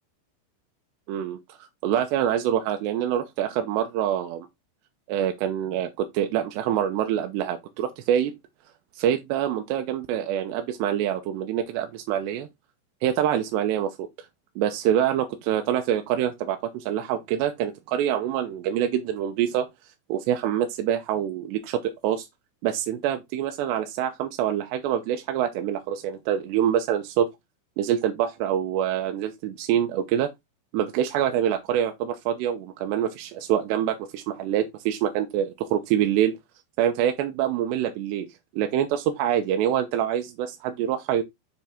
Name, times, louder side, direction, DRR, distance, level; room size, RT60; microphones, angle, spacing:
voice 1, 1.1-4.5 5.1-8.3 9.0-12.5 13.0-14.0 14.6-19.7 20.1-22.3 22.6-27.3 27.8-30.3 30.7-36.3 36.8-38.3 38.5-41.2, right 10 dB, 80° right, 2.8 m, -25 dB
6.9 x 5.3 x 3.5 m
omnidirectional pair, 5.3 m